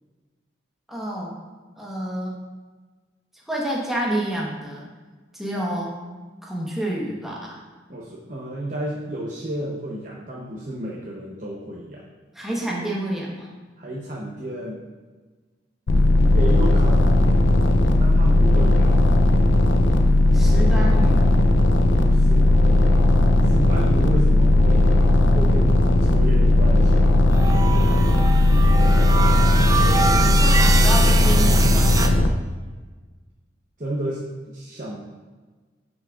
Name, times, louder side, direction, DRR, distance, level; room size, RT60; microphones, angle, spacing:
voice 1, 0.9-1.4 1.8-2.4 3.5-4.8 5.3-5.9 6.4-7.6 12.3-13.5 20.3-21.3 29.8-32.1, right 1 dB, ahead, -4 dB, 1.2 m, -29 dB
voice 2, 7.9-12.0 13.8-14.9 16.2-17.4 18.0-18.9 22.0-22.5 23.4-24.9 25.3-27.1 33.8-35.0, right 1 dB, 40° right, -4 dB, 0.8 m, -31 dB
sound 1, 15.9-32.3, left 1 dB, 80° left, 0.6 m, -16 dB
sound 2, 27.3-32.1, right 5 dB, 20° right, 0.3 m, -25 dB
9.5 x 6.1 x 2.5 m, 1.3 s
head